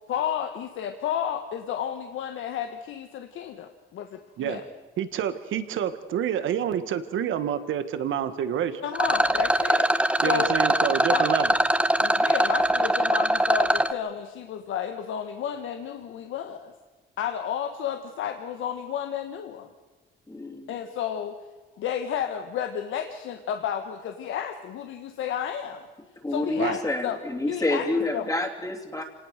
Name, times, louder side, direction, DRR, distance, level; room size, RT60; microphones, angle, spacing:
voice 1, 0.1-4.6 8.8-9.9 10.2-10.5 11.1-11.3 12.0-16.7 17.2-19.7 20.7-21.4 21.8-25.9 26.3-27.2 27.5-27.8 28.1-28.2, left 9 dB, 80° left, 6 dB, 1.4 m, -32 dB
voice 2, 5.0-8.8 10.2-11.5 26.6-26.8, right 9 dB, 80° right, 11 dB, 1.7 m, -28 dB
Rattle, 8.9-13.9, right 1 dB, 5° right, 1.3 m, -22 dB
voice 3, 20.3-20.7 26.2-29.0, left 2 dB, 15° left, 1 dB, 3.3 m, -28 dB
26.5 x 19.0 x 6.7 m, 1.3 s
cardioid pair, 90°, 20 cm